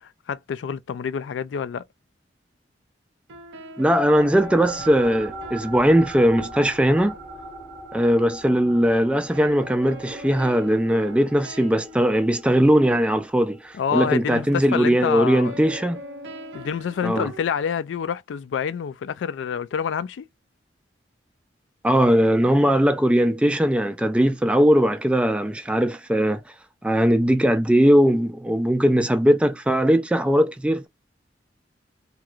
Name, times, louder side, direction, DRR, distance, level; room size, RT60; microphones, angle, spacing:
voice 1, 0.0-1.8 13.8-15.5 16.5-20.3, left 7 dB, 75° left, 0.3 m, -27 dB
sound 1, 3.3-6.7 9.3-13.2 15.4-17.4, right 1 dB, 75° right, 0.7 m, -41 dB
voice 2, 3.8-7.2 7.9-16.0 17.0-17.3 21.8-26.4 26.8-30.9, equal, 5° right, 0.3 m, -19 dB
sound 2, 3.9-14.7, right 2 dB, 15° left, 0.9 m, -40 dB
3.0 x 2.2 x 2.4 m
head